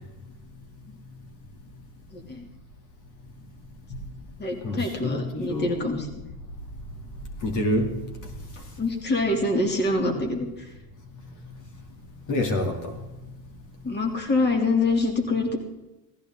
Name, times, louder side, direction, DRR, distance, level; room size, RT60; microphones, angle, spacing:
voice 1, 2.1-2.5 4.4-6.3 8.8-10.7 13.8-15.6, left 2 dB, 30° left, 3 dB, 3.1 m, -25 dB
voice 2, 4.6-5.7 7.4-7.9 12.3-13.0, left 1 dB, 55° left, 4 dB, 2.9 m, -27 dB
17.0 x 15.0 x 3.8 m, 0.99 s
cardioid pair, 125°, 36 cm